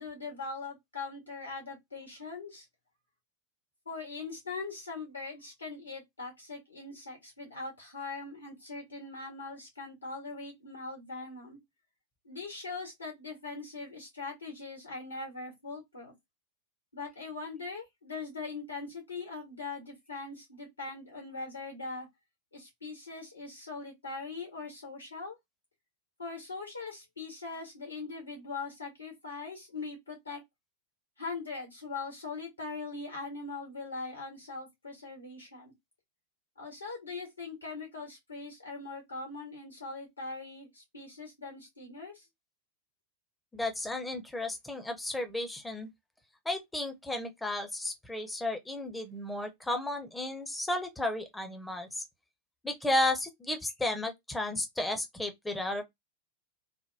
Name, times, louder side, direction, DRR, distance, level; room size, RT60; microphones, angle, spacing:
voice 1, 0.0-2.6 3.8-11.6 12.2-16.1 16.9-22.1 22.5-25.4 26.2-30.4 31.2-35.7 36.6-42.2, left 3 dB, 80° left, 1.6 m, -41 dB
voice 2, 43.5-45.9 46.4-52.0 52.6-55.8, left 2 dB, 5° left, 0.7 m, -33 dB
3.3 x 2.1 x 2.6 m
figure-of-eight pair, 90°, 0 cm